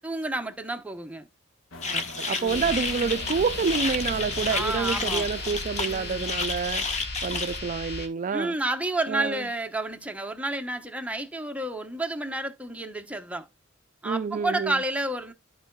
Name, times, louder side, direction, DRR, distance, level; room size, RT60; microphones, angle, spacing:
voice 1, 0.0-1.3 2.4-2.7 4.5-5.3 5.9-6.3 8.3-13.5 14.0-15.3, right 2 dB, 5° right, 0.9 m, -30 dB
sound 1, 1.7-7.2, left 2 dB, 80° left, 1.3 m, -44 dB
sound 2, 1.8-7.6, left 4 dB, 35° left, 1.1 m, -31 dB
voice 2, 1.9-6.8 7.2-8.5 9.1-9.5 14.0-14.8, right 5 dB, 40° right, 0.4 m, -28 dB
sound 3, 2.5-8.1, left 2 dB, 55° left, 2.1 m, -36 dB
14.0 x 4.7 x 2.2 m
head